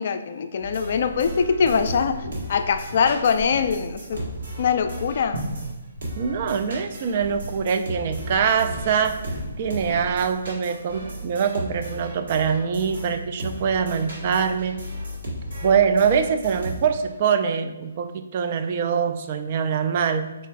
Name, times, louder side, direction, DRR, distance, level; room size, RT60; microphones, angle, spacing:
voice 1, 0.0-4.2 4.6-5.5, left 6 dB, 50° left, 8 dB, 0.3 m, -23 dB
sound 1, 0.6-5.7 6.0-17.1, equal, 70° right, 1.5 m, -35 dB
sound 2, 1.0-10.3, equal, 90° right, 1.3 m, -39 dB
voice 2, 6.2-9.2 9.6-14.8 15.6-20.4, right 7 dB, 40° right, 7 dB, 0.3 m, -23 dB
4.1 x 3.7 x 2.4 m, 1.0 s
figure-of-eight pair, 140°, 0 cm